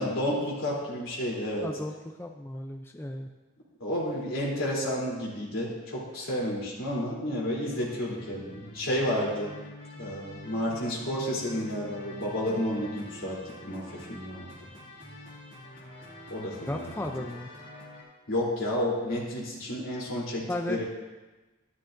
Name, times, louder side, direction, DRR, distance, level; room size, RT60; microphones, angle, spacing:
voice 1, 0.0-1.7 3.8-9.5 10.0-14.7 16.3-17.2 18.3-20.8, left 1 dB, 80° left, -5 dB, 3.2 m, -31 dB
voice 2, 1.6-3.3 16.7-17.5 20.5-20.8, left 1 dB, 10° left, 3 dB, 0.4 m, -35 dB
sound 1, 7.6-18.0, left 1 dB, 45° left, 2.5 m, -46 dB
13.0 x 11.5 x 2.6 m, 1.2 s
head